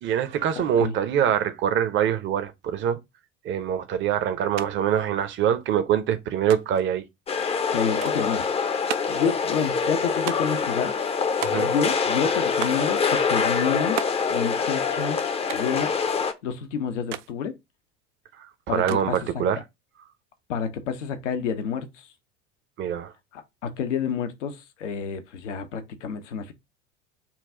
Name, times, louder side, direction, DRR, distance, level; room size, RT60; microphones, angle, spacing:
voice 1, 0.0-3.0 3.4-7.0 11.4-11.7 18.7-19.6 22.8-23.1, right 9 dB, 30° right, 0.7 m, -24 dB
voice 2, 0.6-0.9 7.7-8.5 8.9-10.9 11.5-16.0 16.4-17.6 18.7-19.2 20.5-22.1 23.3-26.5, left 7 dB, 70° left, 0.7 m, -29 dB
sound 1, 4.6-4.7 5.0-5.7 6.5-6.9 8.0-8.3 8.9-9.3 10.3-10.7 11.4-12.0 12.6-12.9 14.0-14.3 15.5-15.8 17.1-17.3 18.9-19.3, right 12 dB, 70° right, 0.5 m, -34 dB
sound 2, 7.3-16.3, left 5 dB, 15° left, 0.5 m, -25 dB
5.8 x 2.3 x 3.5 m
figure-of-eight pair, 70°, 37 cm